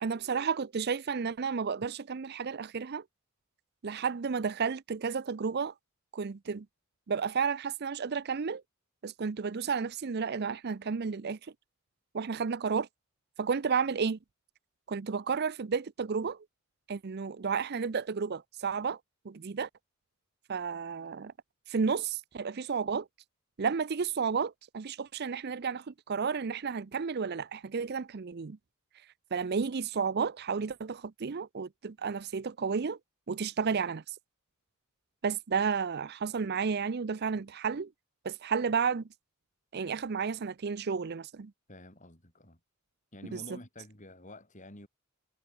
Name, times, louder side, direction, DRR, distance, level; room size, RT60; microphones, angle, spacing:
voice 1, 0.0-3.0 3.8-5.7 6.1-6.7 7.1-8.6 9.0-11.4 12.1-12.9 13.4-14.2 14.9-16.4 16.9-19.0 19.3-19.7 20.5-21.3 21.7-23.1 23.6-28.6 29.3-33.0 33.3-34.1 35.2-37.9 38.2-39.0 39.7-41.5 43.3-43.4, right 5 dB, 50° right, 0.5 m, -32 dB
voice 2, 41.7-42.6 43.1-44.9, left 1 dB, 35° left, 7.7 m, -49 dB
head